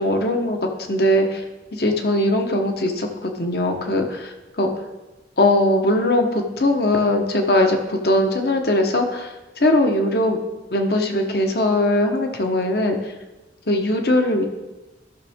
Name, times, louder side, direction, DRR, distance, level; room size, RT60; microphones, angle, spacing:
voice 1, 0.0-1.4 1.7-4.7 5.4-10.4 10.7-13.1 13.7-14.4, left 1 dB, 55° left, 4 dB, 1.1 m, -20 dB
13.5 x 6.1 x 3.6 m, 1.1 s
head